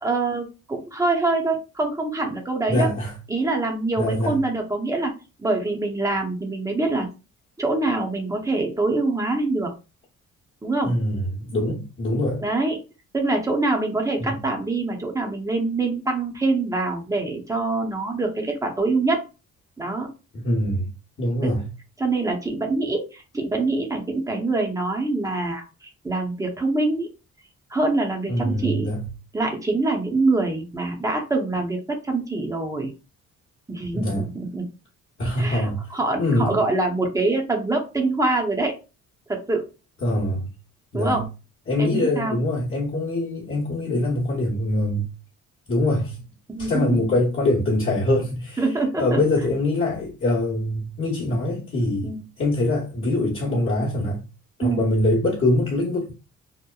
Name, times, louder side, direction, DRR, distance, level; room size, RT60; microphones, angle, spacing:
voice 1, 0.0-2.9 3.3-5.1 5.4-7.1 7.6-9.7 10.6-10.9 12.4-12.8 13.1-19.2 19.8-20.1 21.4-21.5 22.0-27.1 27.7-28.9 29.3-32.9 33.7-34.6 35.4-38.7 39.3-39.7 40.9-41.2 41.8-42.4 46.5-47.1 48.6-49.2 52.0-52.2 54.6-54.9, right 2 dB, 10° right, 0.7 m, -24 dB
voice 2, 2.7-3.1 4.0-4.4 10.8-12.4 14.2-14.4 20.3-20.9 21.2-21.7 28.3-29.0 33.9-34.3 35.2-35.8 36.2-36.6 40.0-40.5 40.9-41.2 41.7-45.1 45.7-46.2 46.6-48.6 49.0-54.2 54.6-56.1, left 1 dB, 40° left, 1.0 m, -23 dB
2.9 x 2.0 x 2.3 m
cardioid pair, 90°, 30 cm